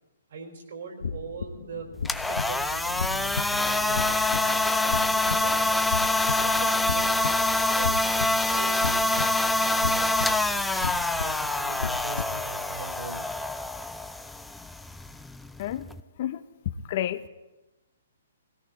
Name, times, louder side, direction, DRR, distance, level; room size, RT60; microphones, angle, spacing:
voice 1, 0.3-1.9 2.3-5.8 6.2-7.4 7.7-9.3 9.5-10.1 10.4-10.9 11.1-13.2, right 4 dB, 65° right, 3 dB, 4.3 m, -41 dB
sound 1, 1.0-12.4, left 5 dB, 75° left, 0.9 m, -35 dB
sound 2, 1.9-16.0, left 2 dB, 5° left, 0.5 m, -26 dB
voice 2, 16.9-17.3, left 12 dB, 45° left, 12 dB, 0.7 m, -29 dB
19.0 x 17.0 x 4.1 m, 1.1 s
hypercardioid pair, 135°, 0 cm